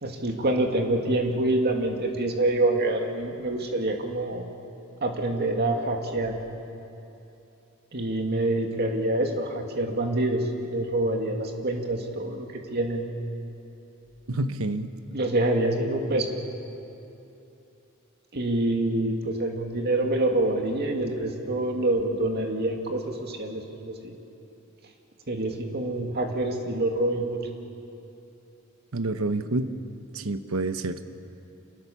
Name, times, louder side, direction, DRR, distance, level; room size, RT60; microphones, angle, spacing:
voice 1, 0.0-4.5 5.0-6.3 7.9-13.1 15.1-16.3 18.3-24.1 25.3-27.4, right 1 dB, 50° right, 3 dB, 2.4 m, -26 dB
voice 2, 14.3-14.9 28.9-29.7 30.1-31.0, right 2 dB, 85° right, 10 dB, 1.0 m, -28 dB
26.5 x 19.0 x 7.1 m, 2.9 s
head